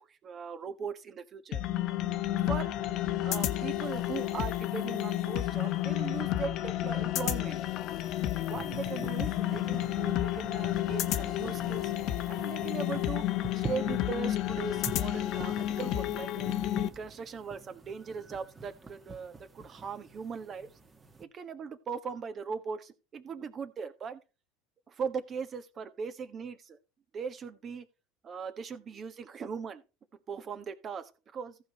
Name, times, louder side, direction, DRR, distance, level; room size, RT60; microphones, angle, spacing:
voice 1, 0.0-1.6 2.5-2.7 3.2-7.6 8.4-11.9 12.3-13.2 13.5-16.5 16.8-20.7 21.2-24.2 24.9-26.8 27.1-27.9 28.2-29.8 30.3-31.6, right 6 dB, 35° right, 1.4 m, -39 dB
sound 1, 1.5-16.9, left 13 dB, 55° left, 0.9 m, -31 dB
sound 2, 8.0-21.2, right 3 dB, 20° right, 1.7 m, -46 dB
14.5 x 4.9 x 4.2 m
hypercardioid pair, 90°, 0 cm